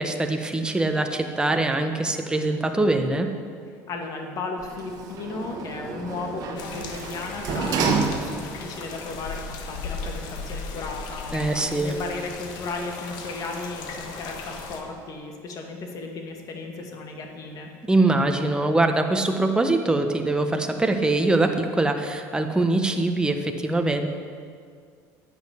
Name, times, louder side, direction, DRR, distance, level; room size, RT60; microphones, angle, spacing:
voice 1, 0.0-3.3 11.3-11.9 17.9-24.1, right 2 dB, 10° right, 5 dB, 1.1 m, -23 dB
voice 2, 3.9-17.7, left 3 dB, 50° left, 2 dB, 2.0 m, -35 dB
Sliding door, 4.6-8.7 9.2-9.3, right 4 dB, 50° right, 1.5 m, -29 dB
sound 1, 6.6-14.8, left 4 dB, 65° left, 1.6 m, -37 dB
10.5 x 6.8 x 8.3 m, 2.1 s
supercardioid pair, 100°, 8 cm